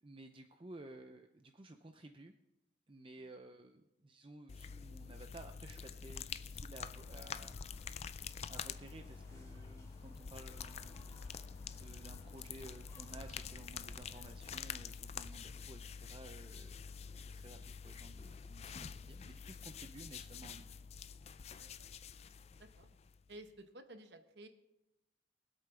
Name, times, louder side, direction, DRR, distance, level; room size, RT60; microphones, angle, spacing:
voice 1, 0.0-2.3 2.9-7.6 7.9-11.2 11.7-16.8 17.2-20.7, right 2 dB, 30° right, 6 dB, 0.6 m, -55 dB
sound 1, 4.5-23.4, left 6 dB, 35° left, 0.3 m, -47 dB
sound 2, 6.7-14.4, equal, 15° left, 3.3 m, -59 dB
voice 2, 21.5-21.9 22.6-23.0 23.3-24.5, right 1 dB, 65° right, 7 dB, 1.0 m, -55 dB
23.0 x 8.3 x 3.4 m, 0.91 s
head